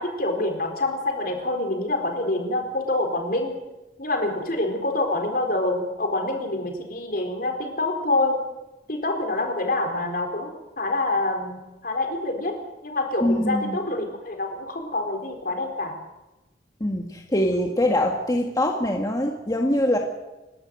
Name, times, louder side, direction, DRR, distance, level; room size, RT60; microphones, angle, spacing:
voice 1, 0.0-3.5 4.0-8.4 8.9-12.6 12.8-16.0, left 2 dB, 55° left, 3 dB, 4.3 m, -26 dB
voice 2, 13.2-13.8 16.8-20.0, left 1 dB, 20° left, 1 dB, 1.7 m, -23 dB
28.5 x 12.5 x 7.8 m, 1.0 s
head